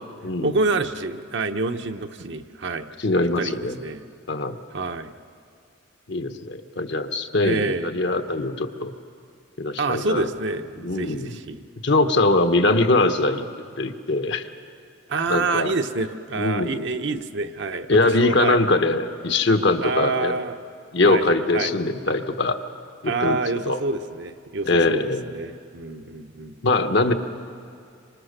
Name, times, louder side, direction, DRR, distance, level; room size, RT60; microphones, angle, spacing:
voice 1, 0.4-2.9 3.4-4.0 4.7-5.1 7.4-7.9 9.8-11.6 15.1-18.6 19.8-20.6 21.0-21.2 21.5-21.7 23.0-26.8, right 3 dB, 60° right, 7 dB, 0.9 m, -27 dB
voice 2, 3.0-3.8 4.3-4.6 6.1-8.9 9.6-10.3 10.8-11.4 11.8-13.5 13.8-14.4 15.3-15.7 16.4-16.8 17.9-20.3 20.9-22.6 23.0-23.8 24.6-25.2 26.6-27.1, left 2 dB, 55° left, 7 dB, 1.1 m, -22 dB
26.0 x 25.5 x 6.7 m, 2.3 s
head